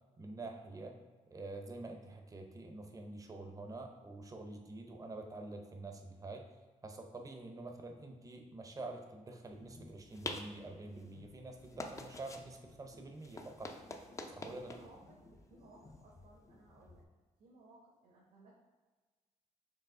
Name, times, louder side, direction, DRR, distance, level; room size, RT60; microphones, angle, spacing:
voice 1, 0.2-1.0 1.3-6.5 6.8-13.7 14.3-14.8, right 2 dB, 25° right, 4 dB, 0.6 m, -47 dB
sound 1, 9.5-17.0, left 2 dB, 20° left, 0.4 m, -49 dB
voice 2, 14.5-17.1 17.4-18.5, right 2 dB, 70° right, -4 dB, 1.0 m, -61 dB
4.8 x 2.9 x 3.7 m, 1.3 s
cardioid pair, 95°, 14 cm